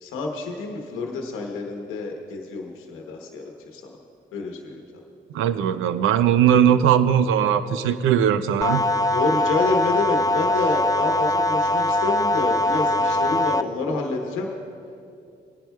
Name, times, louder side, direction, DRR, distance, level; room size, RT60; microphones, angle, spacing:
voice 1, 0.0-3.4 3.7-4.0 4.3-4.8 9.1-14.5, left 3 dB, 85° left, 2 dB, 0.9 m, -28 dB
voice 2, 5.3-8.8, right 9 dB, 85° right, 13 dB, 0.5 m, -19 dB
sound 1, 8.6-13.6, left 1 dB, 15° left, 0.4 m, -22 dB
20.5 x 10.5 x 2.3 m, 2.5 s
supercardioid pair, 45°, 21 cm